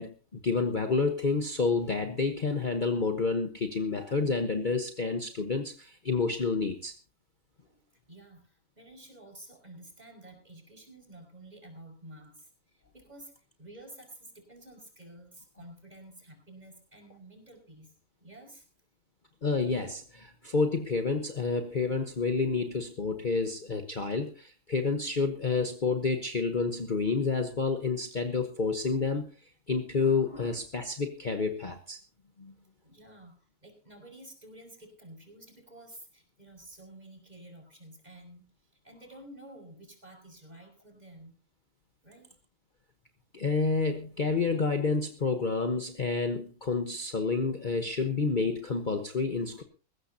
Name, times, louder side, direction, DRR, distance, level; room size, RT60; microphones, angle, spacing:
voice 1, 0.0-6.9 19.4-29.3 29.7-32.0 32.4-32.5 43.3-49.6, left 4 dB, 35° left, 6 dB, 1.2 m, -29 dB
voice 2, 7.6-13.3 13.6-17.9 18.2-18.7 32.8-33.4 33.6-38.5 38.8-41.3 42.0-42.3, right 1 dB, 25° right, 1 dB, 5.5 m, -51 dB
20.0 x 16.5 x 2.8 m, 0.35 s
omnidirectional pair, 1.6 m